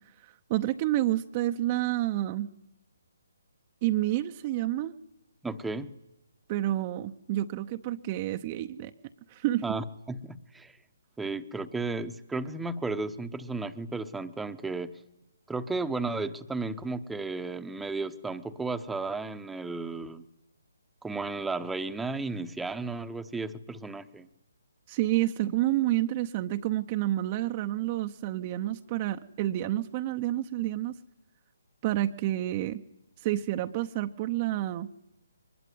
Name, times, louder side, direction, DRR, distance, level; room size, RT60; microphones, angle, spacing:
voice 1, 0.5-2.5 3.8-4.9 6.5-8.9 9.3-9.6 24.9-31.0 31.8-32.8 33.2-34.9, right 14 dB, 30° right, 7 dB, 0.8 m, -29 dB
voice 2, 5.4-5.9 9.6-10.8 11.2-15.0 15.5-20.2 21.0-24.3, right 3 dB, 5° right, 8 dB, 1.0 m, -34 dB
23.0 x 20.0 x 9.4 m, 0.91 s
figure-of-eight pair, 145°, 0 cm